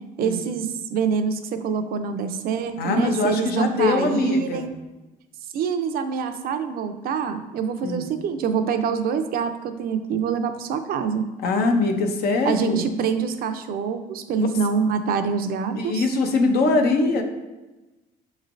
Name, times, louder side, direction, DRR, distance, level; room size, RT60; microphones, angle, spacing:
voice 1, 0.2-4.7 5.5-11.3 12.4-16.1, right 6 dB, 60° right, 8 dB, 0.4 m, -25 dB
voice 2, 2.8-4.7 7.8-8.0 11.4-12.9 14.4-14.5 15.7-17.2, left 3 dB, 65° left, 5 dB, 0.6 m, -22 dB
6.5 x 3.1 x 2.5 m, 1.1 s
cardioid pair, 110°, 17 cm